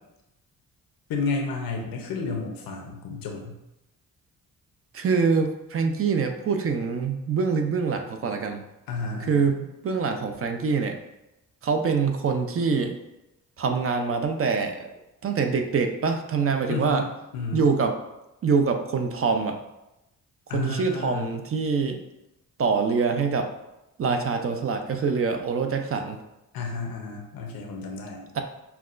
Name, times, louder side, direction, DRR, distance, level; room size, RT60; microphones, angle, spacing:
voice 1, 1.1-3.6 8.9-9.5 16.7-17.7 20.5-21.3 26.5-28.2, left 4 dB, 90° left, 2 dB, 0.7 m, -31 dB
voice 2, 4.9-8.6 9.3-10.9 11.6-13.0 13.6-14.9 15.2-17.0 17.5-17.9 18.4-19.6 20.5-22.0 22.6-23.5 24.0-26.2 28.3-28.4, right 5 dB, 40° right, 5 dB, 0.5 m, -25 dB
5.7 x 2.2 x 2.5 m, 0.92 s
cardioid pair, 85°, 34 cm